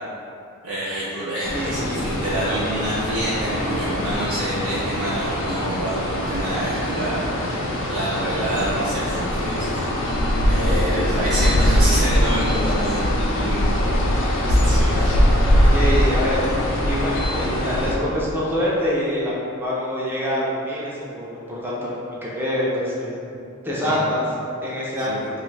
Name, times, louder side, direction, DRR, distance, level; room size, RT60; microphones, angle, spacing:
voice 1, 0.6-7.6 7.9-9.9 10.4-13.0 13.4-13.7 14.5-14.9 23.9-24.0 25.1-25.2, right 1 dB, 80° right, -9 dB, 0.5 m, -27 dB
sound 1, 1.4-17.9, equal, 60° left, 0.4 m, -22 dB
voice 2, 1.5-2.0 14.4-16.4 16.9-21.9 22.2-23.2 23.6-24.2 24.6-25.3, equal, 10° right, -7 dB, 0.5 m, -26 dB
3.0 x 2.4 x 3.2 m, 2.6 s
head